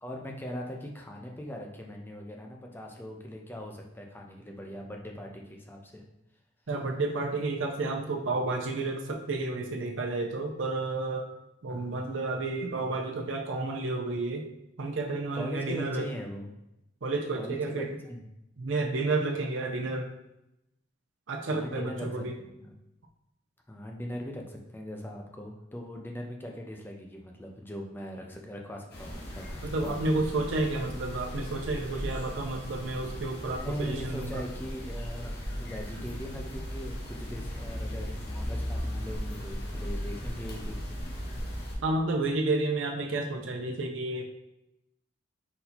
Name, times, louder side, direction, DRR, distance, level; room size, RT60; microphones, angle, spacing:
voice 1, 0.0-6.0 11.7-12.0 15.3-16.5 17.3-18.2 21.5-22.7 23.7-30.2 33.4-40.9, equal, 10° left, 1 dB, 0.5 m, -40 dB
voice 2, 6.7-11.3 11.6-14.4 14.8-16.0 17.0-17.9 18.6-20.1 21.3-22.3 29.6-34.4 41.8-44.2, right 2 dB, 75° right, 1 dB, 0.6 m, -31 dB
sound 1, 28.9-41.8, equal, 55° left, 0.9 m, -37 dB
4.1 x 2.7 x 4.2 m, 0.87 s
head